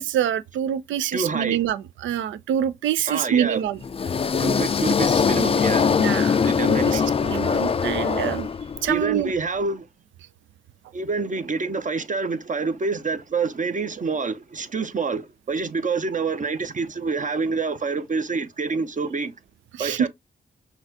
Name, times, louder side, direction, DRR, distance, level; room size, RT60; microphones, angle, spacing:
voice 1, 0.0-3.8 6.0-8.5 8.8-9.3 19.7-20.1, right 10 dB, 80° right, 0.4 m, -26 dB
voice 2, 1.1-1.6 3.1-3.6 4.4-6.0 6.4-7.1 8.9-9.9 10.9-19.3 19.8-20.1, right 4 dB, 40° right, 0.8 m, -27 dB
sound 1, 3.8-9.0, left 6 dB, 30° left, 0.3 m, -22 dB
5.7 x 2.3 x 2.7 m
supercardioid pair, 45°, 20 cm